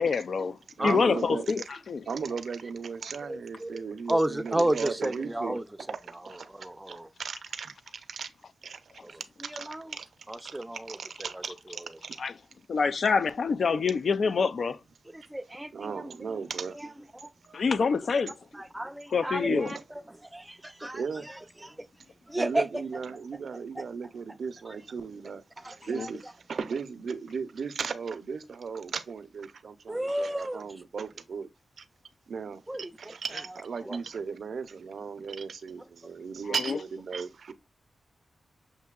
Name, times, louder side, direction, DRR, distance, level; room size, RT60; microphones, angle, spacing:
voice 1, 0.0-0.6 0.8-2.1 12.2-12.4 12.7-14.8 17.5-18.3 19.1-19.7 25.8-26.1 36.4-36.8, left 5 dB, 65° left, 0.3 m, -26 dB
voice 2, 0.8-1.6 2.1-5.6 5.9-6.0 6.2-6.5 6.9-7.7 8.1-8.3 8.6-8.8 9.6-10.1 10.4-10.6 10.9-11.5 12.0-12.2 15.7-16.8 17.5-17.6 19.4-19.8 20.9-21.3 22.4-26.2 26.5-31.5 32.3-37.5, right 5 dB, 70° right, 0.5 m, -36 dB
voice 3, 3.2-5.6 6.2-7.1 9.0-9.1 9.4-10.0 10.3-11.4 11.7-11.8 15.1-16.4 16.7-17.3 18.5-21.9 22.3-22.7 23.8-23.9 24.7-24.8 25.6-26.1 29.9-30.6 32.7-33.1 33.8-34.0, right 1 dB, 10° right, 0.4 m, -33 dB
6.6 x 2.6 x 2.2 m
cardioid pair, 85°, 0 cm